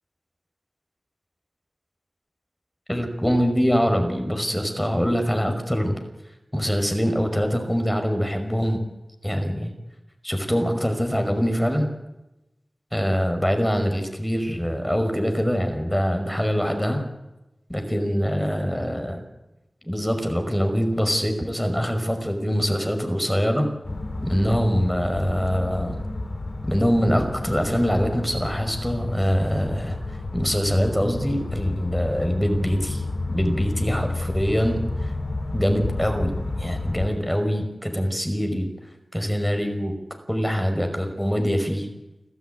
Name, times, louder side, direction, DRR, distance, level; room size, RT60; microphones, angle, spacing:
voice 1, 2.9-6.0 6.5-8.8 9.2-9.7 10.2-11.9 12.9-17.0 17.7-19.2 19.9-23.7 24.2-26.0 26.6-30.0 30.3-33.0 33.3-34.8 35.5-38.7 39.1-39.9 40.3-41.9, equal, 10° left, 5 dB, 5.4 m, -24 dB
sound 1, 23.8-37.1, left 2 dB, 80° left, 4.0 m, -31 dB
30.0 x 13.0 x 9.6 m, 0.98 s
wide cardioid pair, 65°, 0 cm